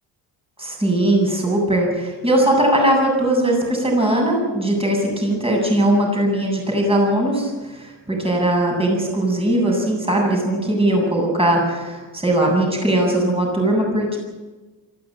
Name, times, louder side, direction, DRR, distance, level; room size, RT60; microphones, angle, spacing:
voice 1, 0.6-14.2, right 1 dB, 15° right, 0 dB, 7.8 m, -19 dB
25.0 x 15.0 x 9.0 m, 1.2 s
cardioid pair, 120°, 41 cm